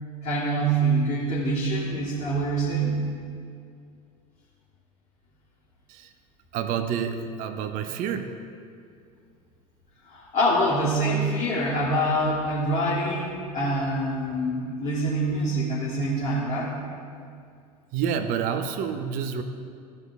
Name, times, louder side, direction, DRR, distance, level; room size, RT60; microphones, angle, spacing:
voice 1, 0.2-2.9 10.0-16.7, right 1 dB, 30° left, -9 dB, 2.2 m, -25 dB
voice 2, 6.5-8.3 17.9-19.4, right 7 dB, 40° right, 9 dB, 0.6 m, -28 dB
14.0 x 5.4 x 3.6 m, 2.3 s
figure-of-eight pair, 75°, 21 cm